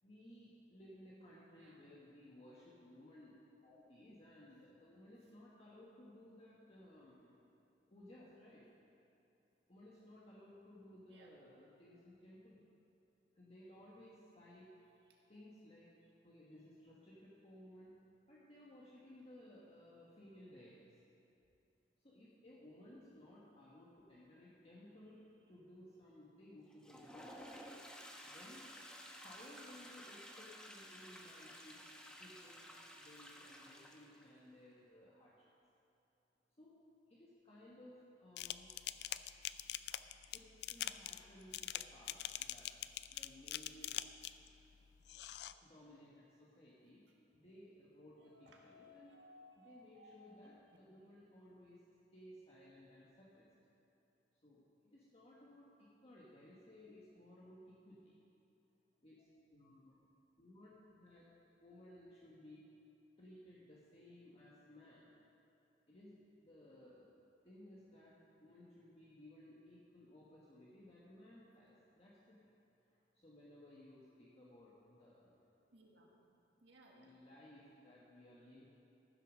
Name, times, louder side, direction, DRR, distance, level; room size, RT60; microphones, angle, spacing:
voice 1, 0.0-3.4 3.6-7.3 7.9-8.7 9.7-12.6 13.3-14.8 15.3-15.9 16.2-20.9 22.0-27.4 28.2-28.7 29.1-31.9 32.2-32.7 33.0-35.5 36.6-36.8 37.1-38.7 40.3-42.7 43.1-44.0 45.5-49.1 49.6-51.8 52.1-53.5 54.4-58.2 59.0-60.0 60.4-62.7 63.2-65.1 65.9-67.2 67.4-72.5 72.9-75.4 77.0-78.6, left 1 dB, 35° left, -7 dB, 1.4 m, -59 dB
voice 2, 1.5-1.8 11.1-11.3 48.2-50.8 75.7-76.1 76.6-77.1, left 1 dB, 90° right, -1 dB, 1.8 m, -62 dB
Toilet flush, 26.7-34.3, equal, 5° left, 1.0 m, -54 dB
sound 1, 38.4-44.5 45.0-45.5, left 13 dB, 65° left, 0.3 m, -43 dB
15.0 x 6.9 x 6.3 m, 2.8 s
head